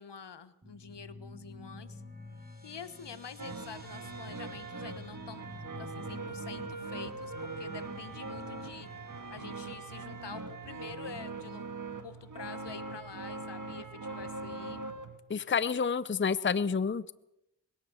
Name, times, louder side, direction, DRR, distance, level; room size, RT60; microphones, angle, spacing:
voice 1, 0.0-2.0 2.6-5.4 5.8-8.9 9.3-11.7 12.0-14.8, left 6 dB, 75° left, 13 dB, 1.3 m, -47 dB
sound 1, 0.6-11.4, left 2 dB, 20° right, 5.2 m, -50 dB
sound 2, 3.4-15.2, right 3 dB, 45° right, 1.9 m, -41 dB
voice 2, 15.3-17.1, left 6 dB, 30° left, 17 dB, 0.6 m, -29 dB
21.5 x 17.5 x 7.0 m, 0.86 s
cardioid pair, 45°, 42 cm